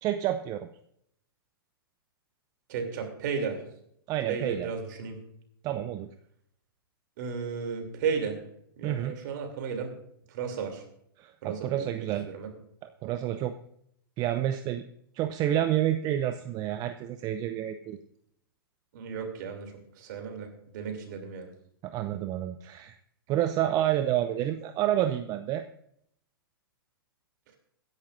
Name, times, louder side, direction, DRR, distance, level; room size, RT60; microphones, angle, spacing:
voice 1, 0.0-0.7 4.1-4.7 5.6-6.1 8.8-9.1 11.2-12.3 13.0-13.5 14.2-14.8 15.1-18.0 21.8-22.9 23.3-25.6, right 12 dB, 30° right, 9 dB, 0.6 m, -29 dB
voice 2, 2.7-3.6 4.3-5.2 7.2-8.4 8.8-9.9 10.3-10.8 11.4-12.5 18.9-21.5, right 6 dB, 55° right, 4 dB, 3.2 m, -34 dB
22.5 x 10.5 x 2.6 m, 0.71 s
figure-of-eight pair, 110°, 12 cm